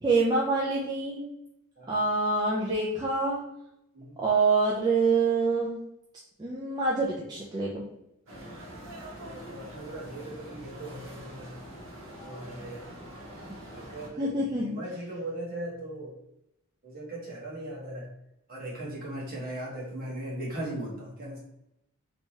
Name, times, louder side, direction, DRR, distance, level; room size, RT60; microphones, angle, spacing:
voice 1, 0.0-1.3 1.9-3.4 4.2-5.8 6.4-7.8 14.2-14.7, right 3 dB, 20° right, -5 dB, 0.5 m, -26 dB
sound 1, 8.3-14.1, equal, 65° right, 1.1 m, -44 dB
voice 2, 9.0-11.6 12.2-12.8 13.7-16.2 16.8-18.1 18.5-21.4, right 1 dB, 45° right, -4 dB, 1.2 m, -38 dB
3.4 x 2.9 x 2.8 m, 0.83 s
head